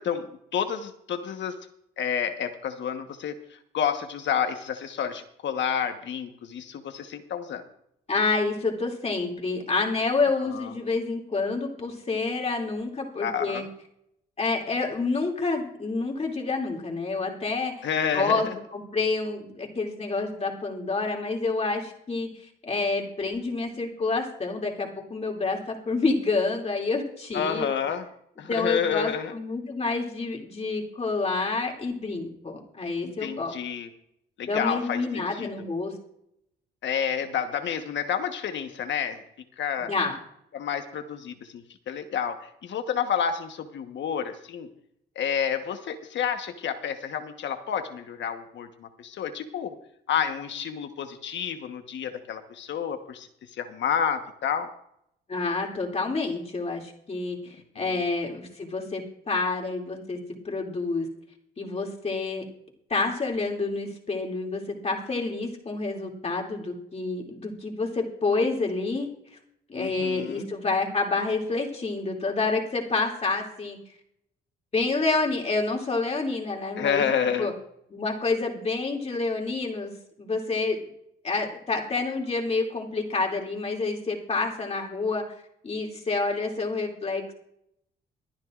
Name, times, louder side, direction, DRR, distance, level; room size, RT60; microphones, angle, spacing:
voice 1, 0.0-1.6 2.0-3.3 3.7-7.6 10.5-10.7 13.2-13.7 17.8-18.5 27.3-28.1 28.4-29.4 33.0-33.9 34.4-35.5 36.8-39.2 39.6-39.9 40.5-42.4 42.6-44.7 45.1-49.8 50.1-54.7 57.8-58.0 69.8-70.5 76.8-77.5, left 8 dB, 65° left, 7 dB, 1.3 m, -29 dB
voice 2, 8.1-13.6 14.4-17.9 18.1-18.5 18.7-27.8 28.5-33.5 34.4-35.9 39.8-40.2 55.3-60.2 60.4-61.1 61.6-62.4 62.9-69.1 69.7-73.8 74.7-77.1 77.4-77.5 77.9-79.9 80.2-80.8 81.2-85.2 85.6-87.3, left 3 dB, 30° left, 0 dB, 2.7 m, -28 dB
24.5 x 10.5 x 2.5 m, 0.74 s
cardioid pair, 90°, 20 cm